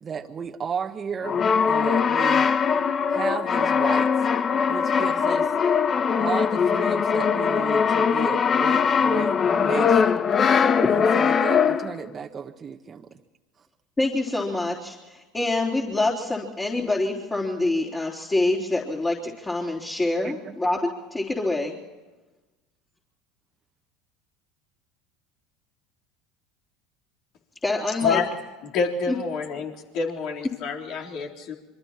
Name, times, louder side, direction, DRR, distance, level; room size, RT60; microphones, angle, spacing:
voice 1, 0.0-1.4 1.7-2.5 3.1-4.1 4.7-5.5 6.2-10.2 10.9-13.2 20.2-20.6, right 6 dB, 35° right, 4 dB, 1.4 m, -34 dB
Brass instrument, 1.2-12.0, left 6 dB, 35° left, 1.0 m, -21 dB
voice 2, 14.0-21.8 27.6-28.2 29.1-29.2, left 2 dB, 20° left, -4 dB, 4.0 m, -26 dB
voice 3, 28.6-31.6, left 5 dB, 60° left, 2 dB, 3.8 m, -27 dB
27.0 x 24.0 x 4.5 m, 1.2 s
hypercardioid pair, 75°, 0 cm